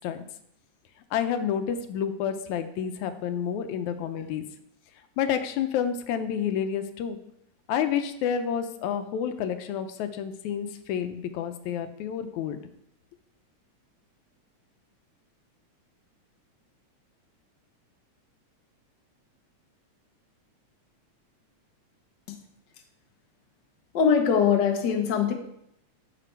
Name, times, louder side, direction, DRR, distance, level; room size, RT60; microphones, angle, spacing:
voice 1, 1.1-4.5 5.2-7.2 7.7-12.6, left 8 dB, 85° left, 9 dB, 2.1 m, -29 dB
voice 2, 23.9-25.3, left 7 dB, 55° left, 3 dB, 1.3 m, -22 dB
12.0 x 5.0 x 4.5 m, 0.76 s
omnidirectional pair, 3.3 m